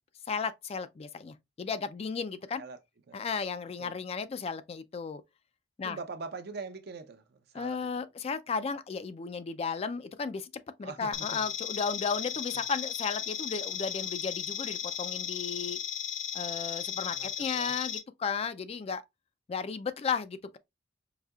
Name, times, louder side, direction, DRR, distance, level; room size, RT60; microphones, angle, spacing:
voice 1, 0.3-2.6 3.1-5.2 5.8-6.0 7.5-10.5 10.8-15.8 16.3-19.0 19.5-20.6, left 5 dB, 30° left, 0.3 m, -34 dB
voice 2, 5.8-7.9 10.8-11.5 12.5-12.6 17.1-17.7, right 4 dB, 55° right, 0.5 m, -43 dB
sound 1, 11.1-18.0, left 9 dB, 80° left, 0.7 m, -35 dB
4.8 x 2.7 x 2.3 m
head